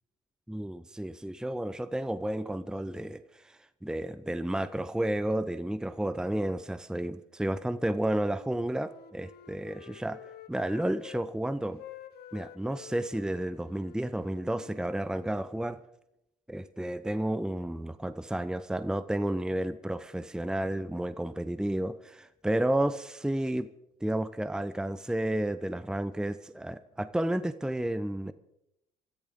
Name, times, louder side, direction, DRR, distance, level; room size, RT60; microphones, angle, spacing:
voice 1, 0.5-10.2 10.5-11.8 12.3-15.8 16.5-23.7 24.0-28.3, right 1 dB, 5° right, 14 dB, 0.8 m, -31 dB
Wind instrument woodwind instrument, 8.3-11.3 11.7-15.6, left 10 dB, 60° left, 1.4 m, -50 dB
25.0 x 14.0 x 3.8 m, 0.84 s
hypercardioid pair, 50°, 19 cm